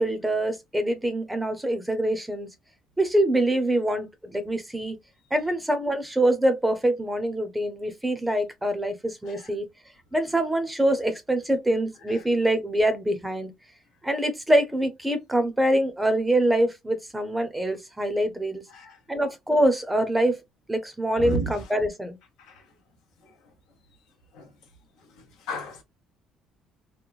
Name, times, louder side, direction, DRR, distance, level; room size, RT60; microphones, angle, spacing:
voice 1, 0.0-2.5 3.0-5.0 5.3-9.7 10.1-13.5 14.0-18.6 19.1-20.4 20.7-22.2, right 1 dB, 10° right, 0.6 m, -24 dB
voice 2, 18.7-19.0 21.2-21.7 22.4-22.7 23.2-23.5 24.3-24.6 25.0-25.8, right 1 dB, 80° left, 0.8 m, -35 dB
3.0 x 2.1 x 2.4 m
cardioid pair, 105°, 0 cm